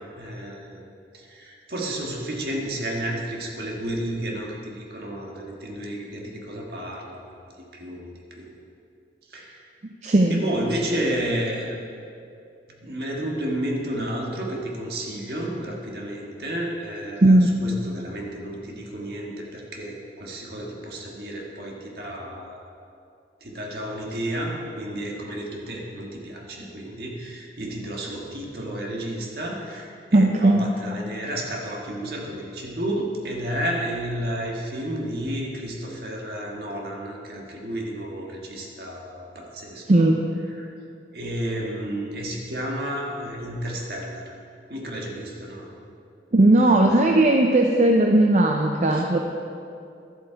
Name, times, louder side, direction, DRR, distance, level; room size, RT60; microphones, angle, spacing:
voice 1, 0.2-0.8 1.1-7.5 7.7-8.6 9.3-9.7 10.3-11.8 12.7-22.8 23.4-40.1 40.5-40.7 41.1-44.3 44.7-45.7 46.6-47.1 48.9-49.1, right 1 dB, 60° right, -1 dB, 1.6 m, -32 dB
voice 2, 10.0-10.4 17.2-17.6 30.1-30.7 39.9-40.2 46.3-49.2, right 1 dB, 40° right, 2 dB, 0.5 m, -17 dB
12.0 x 7.6 x 4.5 m, 2.5 s
head